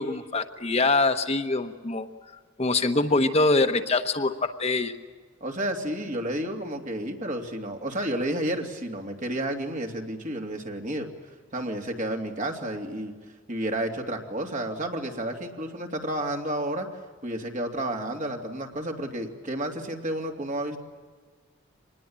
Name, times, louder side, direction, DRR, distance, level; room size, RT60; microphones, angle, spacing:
voice 1, 0.0-2.1 2.6-4.9, left 3 dB, 35° left, 8 dB, 1.1 m, -24 dB
voice 2, 5.4-11.1 11.5-13.1 13.5-16.9 17.2-20.8, right 1 dB, 40° right, 2 dB, 2.9 m, -31 dB
25.5 x 20.0 x 8.9 m, 1.5 s
head